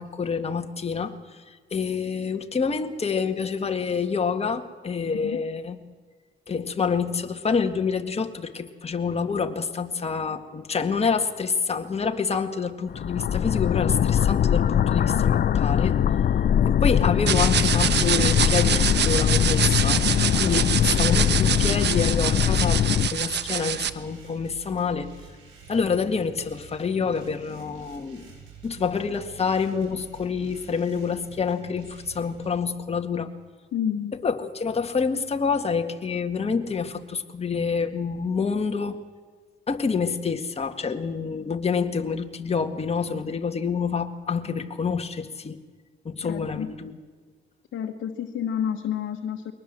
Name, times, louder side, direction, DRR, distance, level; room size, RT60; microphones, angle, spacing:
voice 1, 0.0-5.8 6.5-16.0 16.8-22.8 23.1-25.1 25.7-28.3 28.6-33.3 34.2-39.0 39.7-45.6 46.1-47.0, left 5 dB, 30° left, 6 dB, 1.8 m, -27 dB
sound 1, 12.9-23.1, left 9 dB, 50° left, 0.7 m, -22 dB
sound 2, 17.3-23.9, right 9 dB, 60° right, 1.2 m, -25 dB
sound 3, 17.9-32.5, right 5 dB, 85° right, 7.5 m, -47 dB
voice 2, 33.7-34.1 46.2-46.7 47.7-49.5, left 9 dB, 70° left, 4 dB, 1.4 m, -29 dB
22.5 x 19.0 x 7.6 m, 1.5 s
cardioid pair, 90°, 20 cm